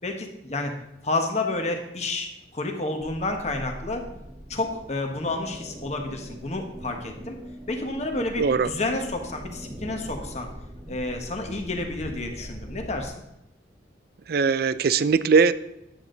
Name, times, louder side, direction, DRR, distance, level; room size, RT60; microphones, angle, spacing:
voice 1, 0.0-0.7 1.0-4.1 4.5-7.4 7.7-10.5 10.9-13.2, left 2 dB, 35° left, 4 dB, 1.4 m, -30 dB
sound 1, 3.0-13.1, equal, 30° right, 1.0 m, -41 dB
voice 2, 8.4-8.7 14.3-15.5, right 5 dB, 55° right, 15 dB, 0.4 m, -20 dB
10.0 x 8.4 x 4.0 m, 0.87 s
head